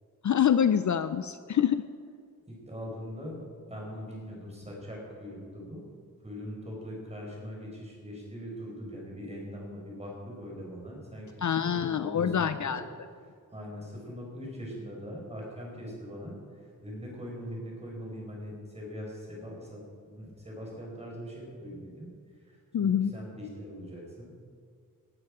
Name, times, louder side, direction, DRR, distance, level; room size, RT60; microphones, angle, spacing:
voice 1, 0.2-1.8 11.4-12.8 22.7-23.1, left 8 dB, 55° left, 12 dB, 0.5 m, -26 dB
voice 2, 2.4-3.4 3.7-5.8 6.2-12.8 13.5-22.1 22.4-24.3, equal, 20° right, -2 dB, 4.5 m, -41 dB
18.5 x 12.0 x 4.9 m, 2.1 s
wide cardioid pair, 170°, 35 cm